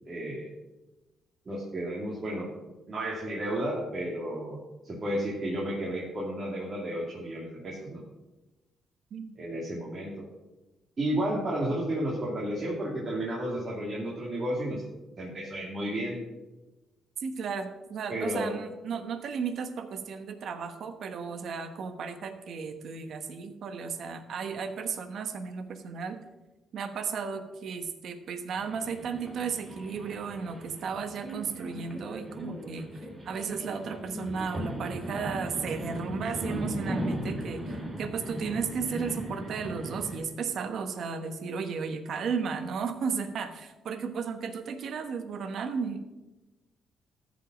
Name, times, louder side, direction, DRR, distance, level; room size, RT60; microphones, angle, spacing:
voice 1, 0.0-0.5 1.5-2.5 2.9-4.6 4.8-8.0 9.4-10.2 11.0-14.8 15.2-16.2 18.1-18.5, right 1 dB, 40° right, -5 dB, 2.7 m, -32 dB
voice 2, 17.2-26.2 26.7-32.9 33.2-46.0, right 6 dB, 65° right, 8 dB, 1.2 m, -34 dB
sound 1, 28.5-40.2, equal, 15° right, 3.9 m, -38 dB
13.5 x 5.3 x 6.2 m, 1.1 s
cardioid pair, 90°, 0 cm